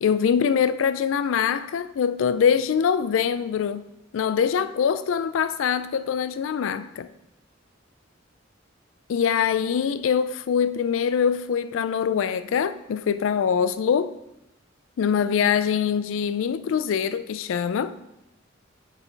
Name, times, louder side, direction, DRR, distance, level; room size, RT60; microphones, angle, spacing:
voice 1, 0.0-3.8 4.1-7.1 9.1-14.1 15.0-18.0, left 7 dB, 80° left, 0.3 m, -23 dB
8.9 x 4.5 x 4.5 m
head